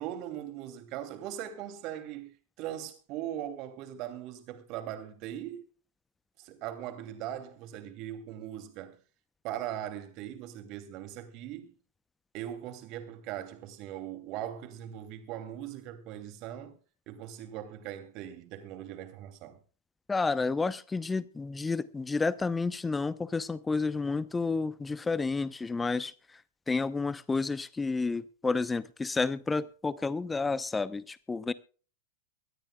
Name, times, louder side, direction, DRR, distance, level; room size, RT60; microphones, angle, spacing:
voice 1, 0.0-2.3 2.6-5.6 6.4-9.0 9.4-11.8 12.3-16.8 17.1-19.6, right 11 dB, 45° right, 2.8 m, -40 dB
voice 2, 20.1-26.1 26.7-31.5, left 4 dB, 10° left, 0.8 m, -30 dB
24.0 x 13.5 x 2.4 m
figure-of-eight pair, 95°, 0 cm